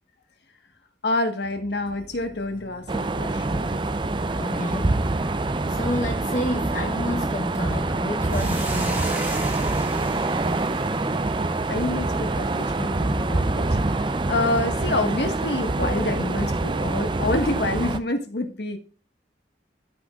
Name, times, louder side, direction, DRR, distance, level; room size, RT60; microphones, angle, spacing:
voice 1, 1.0-3.7 11.7-18.8, left 2 dB, 65° left, 1.5 m, -27 dB
sound 1, 1.4-17.6, equal, 25° left, 1.5 m, -48 dB
sound 2, 2.9-18.0, right 2 dB, 25° right, 0.5 m, -25 dB
voice 2, 4.4-5.0 5.7-9.4, left 1 dB, 45° left, 1.0 m, -30 dB
Hiss, 8.3-12.8, right 2 dB, 10° right, 1.5 m, -38 dB
14.0 x 6.1 x 2.4 m
head